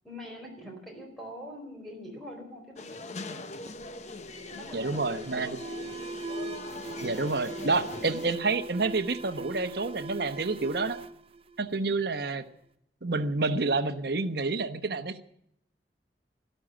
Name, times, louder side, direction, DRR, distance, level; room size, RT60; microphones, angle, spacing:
voice 1, 0.0-3.5 4.5-5.7, equal, ahead, 1 dB, 4.4 m, -44 dB
sound 1, 2.8-8.4, left 3 dB, 40° left, 0.9 m, -41 dB
Alarm, 3.7-12.3, right 3 dB, 35° right, 0.6 m, -41 dB
voice 2, 4.7-5.5 7.0-11.0 11.6-12.5 13.0-15.2, right 3 dB, 65° right, 7 dB, 1.1 m, -29 dB
12.5 x 12.5 x 8.9 m, 0.74 s
head